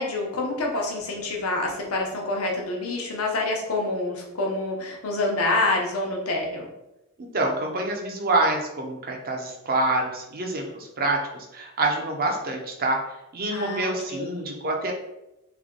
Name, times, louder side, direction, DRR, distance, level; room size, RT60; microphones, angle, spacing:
voice 1, 0.0-6.7 13.5-14.5, left 2 dB, 85° left, 0 dB, 0.8 m, -27 dB
voice 2, 7.2-13.0 13.3-14.9, right 2 dB, 45° right, 1 dB, 0.6 m, -26 dB
3.3 x 2.2 x 3.6 m, 0.92 s
head